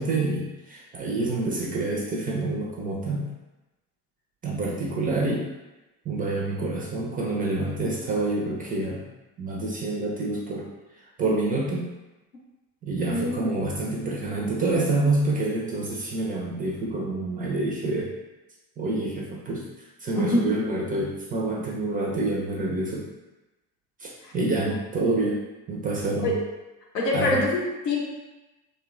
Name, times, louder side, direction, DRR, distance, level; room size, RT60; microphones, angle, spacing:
voice 1, 0.0-3.3 4.4-5.5 6.1-9.1 9.4-10.6 11.2-11.9 12.8-18.1 18.8-19.7 20.0-23.1 24.0-24.1 24.3-25.4 25.7-26.3 27.1-27.4, right 2 dB, 20° right, -3 dB, 0.3 m, -27 dB
voice 2, 13.1-13.4 20.2-20.5 24.2-24.3 26.2-26.5 26.9-28.0, left 1 dB, 80° left, -1 dB, 0.6 m, -25 dB
2.8 x 2.1 x 2.3 m, 1.1 s
figure-of-eight pair, 55°, 47 cm